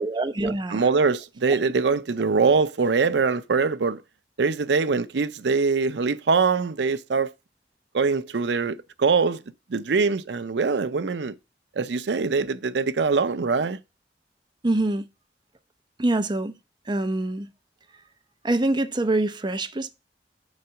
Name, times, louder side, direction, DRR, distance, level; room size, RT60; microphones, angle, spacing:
voice 1, 0.0-0.8 1.5-1.6 14.6-15.1 16.0-16.5 16.9-17.5 18.4-19.9, right 2 dB, 25° right, 0.7 m, -25 dB
voice 2, 0.7-4.0 4.4-7.3 7.9-9.4 9.7-11.3 11.8-13.8, right 4 dB, 75° right, 0.5 m, -23 dB
7.6 x 4.1 x 5.7 m
head